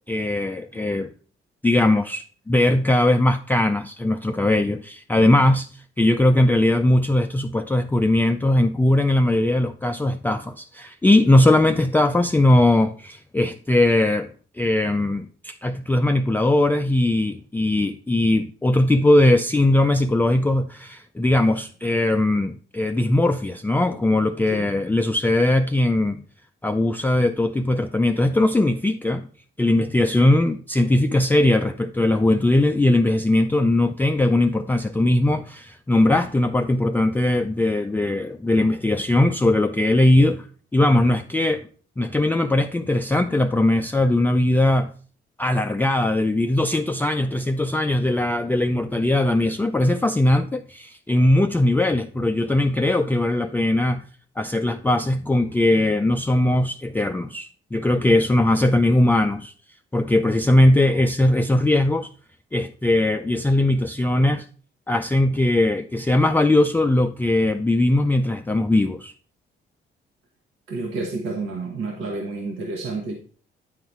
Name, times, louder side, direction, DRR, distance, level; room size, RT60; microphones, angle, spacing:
voice 1, 0.1-1.1 1.6-5.7 6.0-26.2 26.6-29.3 29.6-40.5 40.7-41.7 42.0-44.9 45.4-54.1 54.4-59.5 59.9-62.1 62.5-64.5 64.9-69.1, left 1 dB, 10° left, 0.4 m, -20 dB
voice 2, 70.7-73.1, right 3 dB, 85° right, 1.3 m, -30 dB
9.3 x 3.9 x 4.5 m
cardioid pair, 90°, 20 cm